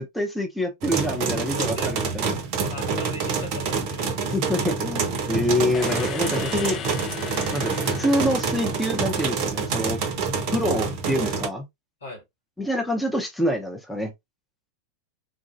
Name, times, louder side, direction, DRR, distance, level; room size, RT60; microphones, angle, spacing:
voice 1, 0.0-2.4 4.3-6.8 7.5-10.0 10.5-11.7 12.6-14.1, left 1 dB, 5° left, 0.7 m, -26 dB
sound 1, 0.8-11.5, right 5 dB, 40° right, 0.7 m, -27 dB
voice 2, 1.6-1.9 2.7-4.4 12.0-12.3, left 2 dB, 70° left, 1.7 m, -38 dB
sound 2, 5.7-9.6, left 10 dB, 30° left, 0.4 m, -37 dB
3.9 x 2.5 x 2.4 m
figure-of-eight pair, 90°, 0 cm